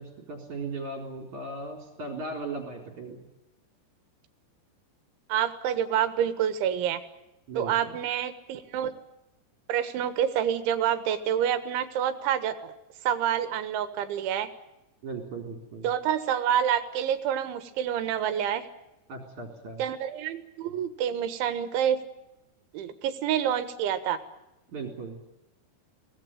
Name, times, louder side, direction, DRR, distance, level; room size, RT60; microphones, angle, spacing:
voice 1, 0.0-3.2 7.5-7.9 15.0-15.9 19.1-19.8 24.7-25.2, right 3 dB, 45° right, 4 dB, 5.1 m, -37 dB
voice 2, 5.3-7.0 7.6-8.9 9.7-12.7 13.1-14.5 15.8-18.7 19.8-22.0 22.7-24.2, right 9 dB, 90° right, 11 dB, 4.0 m, -27 dB
24.5 x 19.0 x 9.1 m, 0.92 s
omnidirectional pair, 5.2 m